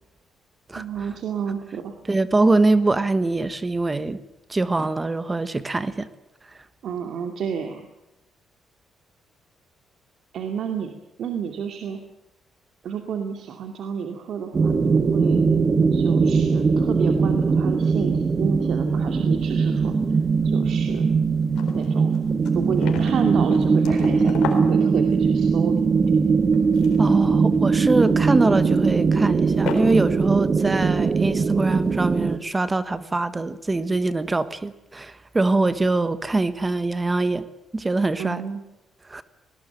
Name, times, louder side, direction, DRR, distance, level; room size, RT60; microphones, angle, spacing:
voice 1, 0.7-2.0 6.8-7.9 10.3-10.9 11.2-12.0 12.8-15.4 15.9-19.9 20.4-21.1 21.7-22.2 22.5-25.7 38.2-38.6, right 7 dB, 70° right, 5 dB, 2.4 m, -30 dB
voice 2, 2.1-4.2 4.5-6.1 27.0-37.5 37.7-38.4 39.1-39.2, right 2 dB, 20° right, 13 dB, 1.4 m, -23 dB
sound 1, 14.5-32.4, right 5 dB, 35° right, 1.7 m, -20 dB
sound 2, 19.4-20.1 20.4-20.5 20.9-21.0 21.3-25.5 26.4-27.1 27.5-27.8 28.8-28.9 29.6-30.2 30.6-30.7, left 6 dB, 85° left, 4.1 m, -35 dB
20.0 x 19.5 x 9.1 m, 0.92 s
cardioid pair, 90°, 0 cm